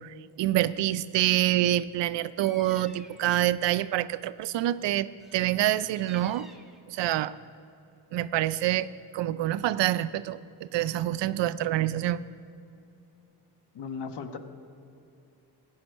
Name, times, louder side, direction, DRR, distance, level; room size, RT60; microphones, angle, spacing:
voice 1, 0.0-6.5 6.9-7.4 8.1-8.9 9.1-12.2, right 13 dB, 90° right, 15 dB, 0.6 m, -27 dB
Bird vocalization bird call bird song, 2.3-3.3 5.2-6.8, equal, ahead, 1.0 m, -51 dB
voice 2, 13.7-14.4, left 5 dB, 75° left, 7 dB, 1.2 m, -36 dB
16.0 x 6.4 x 9.1 m, 2.7 s
cardioid pair, 130°, 41 cm